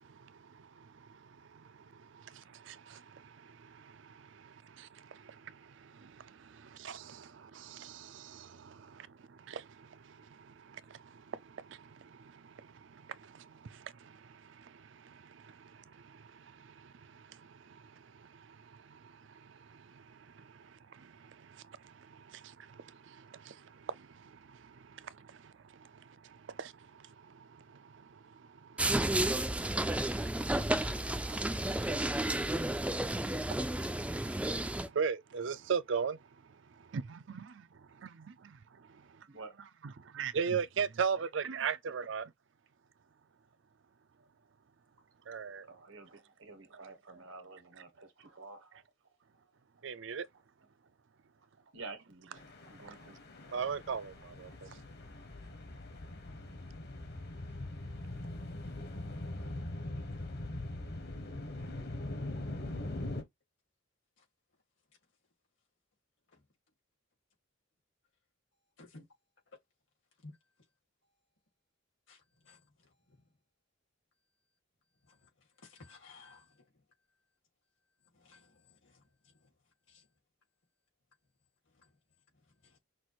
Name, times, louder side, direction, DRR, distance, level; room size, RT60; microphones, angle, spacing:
voice 1, 0.1-0.9 1.5-1.6 1.9-9.1 9.5-17.8 18.2-20.0 20.3-29.4 29.7-32.5 32.8-34.4 34.8-36.2 36.9-37.7 38.0-38.6 39.8-42.3 45.3-45.7 49.8-50.3 53.5-54.5, right 6 dB, 70° right, 0.5 m, -41 dB
sound 1, 28.8-34.9, right 1 dB, 5° right, 0.3 m, -32 dB
voice 2, 39.3-39.7 45.7-48.8 51.7-53.2 54.6-54.7, right 3 dB, 85° right, 1.5 m, -50 dB
sound 2, 52.4-63.2, left 1 dB, 55° left, 1.1 m, -42 dB
voice 3, 75.7-76.5 78.2-78.5 78.8-78.9 79.9-80.0, left 2 dB, 75° left, 2.1 m, -53 dB
5.9 x 2.5 x 3.0 m
head